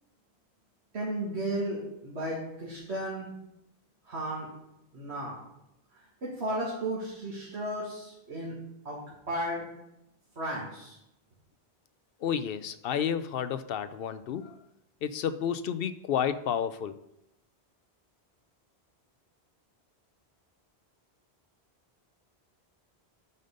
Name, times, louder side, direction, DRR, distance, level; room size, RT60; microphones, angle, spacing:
voice 1, 0.9-3.3 4.1-4.5 4.9-5.4 5.9-8.5 8.9-9.0 9.3-9.6 10.4-11.0, right 1 dB, 85° right, -5 dB, 2.2 m, -34 dB
voice 2, 12.2-14.6 15.0-17.0, left 8 dB, 65° left, 13 dB, 0.7 m, -31 dB
9.6 x 5.2 x 5.2 m, 0.84 s
omnidirectional pair, 1.1 m